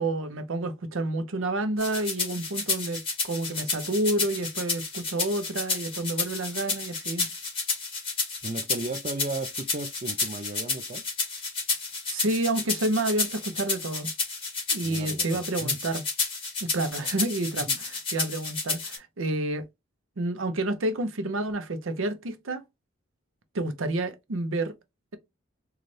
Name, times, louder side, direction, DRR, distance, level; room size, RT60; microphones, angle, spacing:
voice 1, 0.0-7.3 12.1-14.1 14.7-16.0 16.6-19.6 20.2-22.6 23.5-24.7, right 2 dB, 85° right, 0.7 m, -29 dB
sound 1, 1.8-19.0, left 4 dB, 25° left, 1.6 m, -31 dB
voice 2, 8.4-11.0 14.8-15.8 17.7-17.8, right 2 dB, 35° right, 0.5 m, -35 dB
4.0 x 2.4 x 3.2 m
head